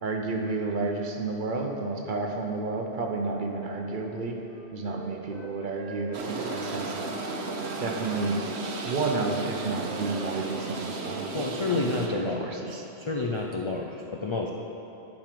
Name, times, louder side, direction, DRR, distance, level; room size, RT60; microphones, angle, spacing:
voice 1, 0.0-4.4 4.7-7.1 7.8-8.4 8.8-12.9, right 3 dB, 50° right, 2 dB, 0.9 m, -31 dB
Wind instrument woodwind instrument, 4.4-7.8 8.1-9.7 10.0-10.2 10.5-11.2 11.4-11.7, right 2 dB, 5° left, 1.7 m, -46 dB
sound 1, 6.1-12.1, right 3 dB, 75° right, 1.0 m, -34 dB
voice 2, 11.3-14.5, left 3 dB, 45° left, 1 dB, 0.3 m, -30 dB
10.5 x 5.3 x 5.1 m, 3.0 s
omnidirectional pair, 1.1 m